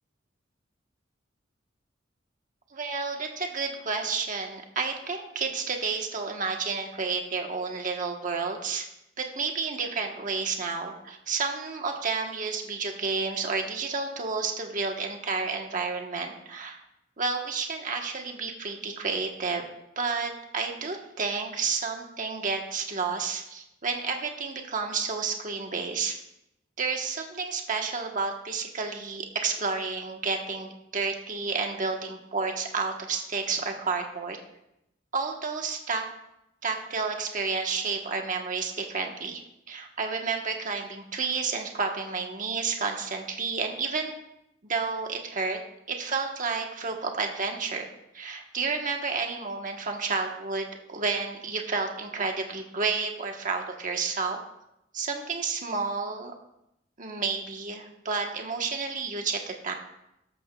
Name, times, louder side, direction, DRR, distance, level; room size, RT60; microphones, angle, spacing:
voice 1, 2.7-8.9 9.2-16.8 17.2-19.6 20.0-26.2 26.8-34.4 35.1-36.0 36.6-39.4 39.7-44.2 44.6-45.6 45.9-47.9 48.1-54.4 54.9-56.3 57.0-59.7, right 4 dB, 45° right, 3 dB, 1.2 m, -31 dB
13.5 x 12.5 x 2.3 m, 0.85 s
head